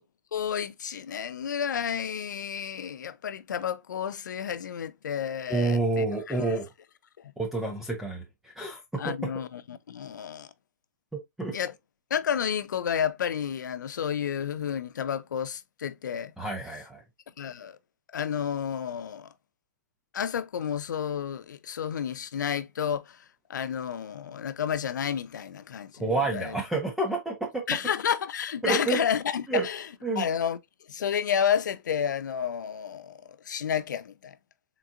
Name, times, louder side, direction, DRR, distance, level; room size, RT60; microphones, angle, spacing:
voice 1, 0.3-6.4 9.0-10.5 11.5-11.7 12.1-16.3 17.4-17.8 18.1-19.3 20.1-23.2 23.5-26.6 27.7-29.9 30.2-30.6 30.9-33.2 33.5-34.3, left 8 dB, 85° left, 0.5 m, -31 dB
voice 2, 5.5-6.7 7.4-9.1 11.1-11.6 16.4-17.0 26.0-27.6 28.6-29.0 29.5-29.7 30.0-30.2, right 3 dB, 5° right, 0.4 m, -29 dB
3.8 x 3.5 x 2.4 m
hypercardioid pair, 155°, 10 cm